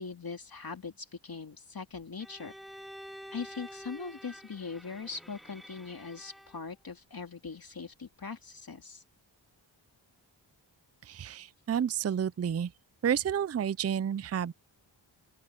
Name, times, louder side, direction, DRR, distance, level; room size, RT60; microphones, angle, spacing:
voice 1, 0.0-2.5 2.8-2.9 3.3-9.0, left 5 dB, 50° left, 2.4 m, -41 dB
Bowed string instrument, 2.2-6.7, equal, ahead, 2.6 m, -49 dB
voice 2, 11.1-12.7 13.0-14.5, right 8 dB, 35° right, 0.5 m, -30 dB
open air
cardioid pair, 65°, 46 cm